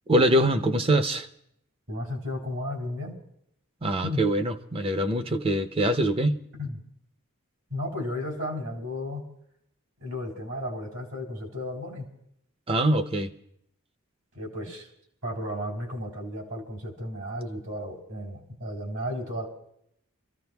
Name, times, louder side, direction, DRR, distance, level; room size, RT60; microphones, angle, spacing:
voice 1, 0.1-1.3 3.8-6.4 12.7-13.3, right 1 dB, 25° right, 0.6 m, -23 dB
voice 2, 1.9-3.2 4.0-4.3 6.5-6.8 7.7-9.3 10.0-12.1 14.3-14.9 15.2-19.5, left 1 dB, 75° right, 3.4 m, -34 dB
29.5 x 14.5 x 2.3 m
head